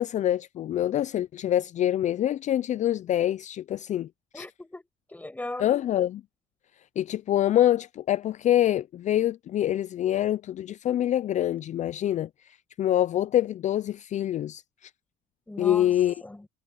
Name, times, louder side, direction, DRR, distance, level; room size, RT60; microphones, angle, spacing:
voice 1, 0.0-4.1 4.3-4.4 5.6-6.2 7.0-14.9 15.6-16.1, left 12 dB, 45° left, 0.4 m, -25 dB
voice 2, 4.3-5.7 15.5-15.9 16.2-16.5, left 2 dB, 10° left, 6.0 m, -38 dB
cardioid pair, 110°, 17 cm